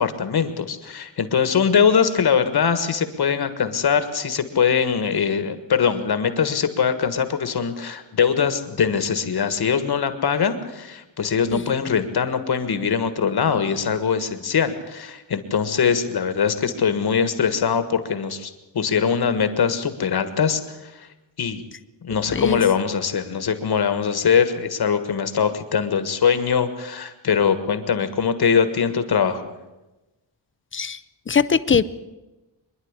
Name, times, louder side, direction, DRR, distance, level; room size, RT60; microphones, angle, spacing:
voice 1, 0.0-21.1 21.4-21.6 22.0-29.6, left 6 dB, 55° left, 10 dB, 1.7 m, -22 dB
voice 2, 31.3-31.8, left 6 dB, 25° left, 15 dB, 0.6 m, -20 dB
24.5 x 11.0 x 9.7 m, 1.1 s
wide cardioid pair, 175°, 45 cm